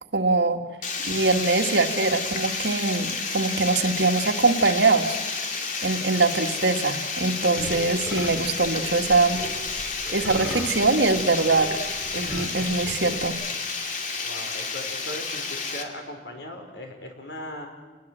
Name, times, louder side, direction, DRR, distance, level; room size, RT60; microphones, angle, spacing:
voice 1, 0.1-0.6 1.0-5.2 5.8-9.4 10.1-11.7 12.1-13.4, right 3 dB, 85° right, 5 dB, 1.9 m, -23 dB
Water, 0.8-15.8, left 4 dB, 45° left, 2.7 m, -31 dB
sound 1, 7.5-13.3, equal, 5° left, 4.7 m, -38 dB
voice 2, 14.2-17.7, left 1 dB, 85° left, 4 dB, 4.9 m, -38 dB
29.0 x 20.5 x 7.6 m, 1.3 s
head